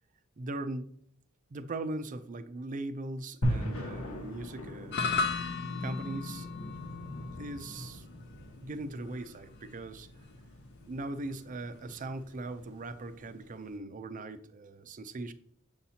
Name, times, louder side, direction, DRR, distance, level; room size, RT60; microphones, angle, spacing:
voice 1, 0.4-0.9 1.5-5.1 5.8-6.5 7.4-8.0 8.6-10.1 10.9-15.3, right 2 dB, 40° right, 0.5 m, -39 dB
sound 1, 3.4-13.7, equal, 90° left, 1.3 m, -40 dB
sound 2, 4.9-13.3, left 4 dB, 55° left, 0.6 m, -38 dB
7.0 x 5.6 x 2.8 m
head